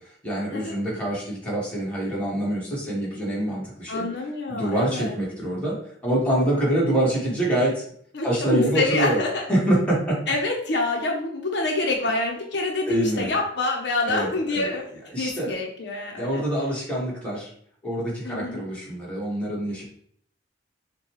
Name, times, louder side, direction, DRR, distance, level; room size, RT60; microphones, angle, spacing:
voice 1, 0.0-4.1 4.5-7.8 8.2-9.2 9.5-10.2 12.9-13.3 14.1-14.7 15.1-15.5 16.1-17.5 17.8-19.8, right 1 dB, 5° left, -6 dB, 1.5 m, -25 dB
voice 2, 3.9-5.2 8.1-9.4 10.3-14.8 15.2-16.4 18.2-18.6, left 2 dB, 70° left, 1 dB, 0.7 m, -26 dB
6.3 x 2.3 x 3.0 m, 0.64 s
head